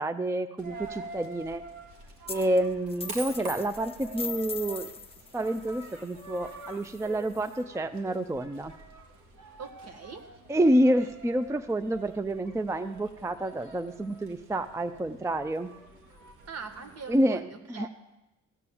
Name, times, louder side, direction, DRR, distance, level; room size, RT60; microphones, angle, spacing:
voice 1, 0.0-1.6 2.3-4.9 5.3-8.7 10.5-15.7 17.1-17.4 17.7-17.9, right 1 dB, 10° right, 11 dB, 0.4 m, -28 dB
Coin (dropping), 0.6-17.2, right 3 dB, 85° right, 1.9 m, -46 dB
sound 1, 2.3-2.6 2.9-7.6, left 5 dB, 20° left, 0.9 m, -41 dB
voice 2, 9.6-10.3 16.5-17.9, right 5 dB, 55° right, 6 dB, 1.7 m, -42 dB
16.0 x 6.8 x 6.9 m, 0.97 s
cardioid pair, 90°, 30 cm